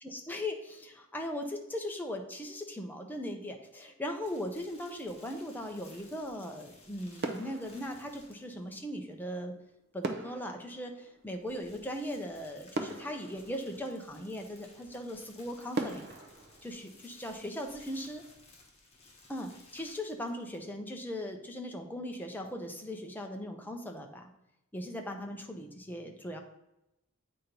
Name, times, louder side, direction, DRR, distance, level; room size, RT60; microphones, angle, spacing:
voice 1, 0.0-9.5 9.9-16.1 16.6-18.2 19.3-24.3 24.7-26.4, left 1 dB, 10° left, 3 dB, 0.6 m, -39 dB
sound 1, 4.2-8.7 11.1-20.7, left 2 dB, 30° left, 1.2 m, -58 dB
sound 2, 6.8-6.9 7.2-8.7 10.0-11.9 12.4-12.5 12.7-14.3 14.9-15.0 15.7-17.6 18.0-18.2, right 2 dB, 45° right, 0.6 m, -40 dB
8.3 x 2.9 x 5.1 m, 0.89 s
head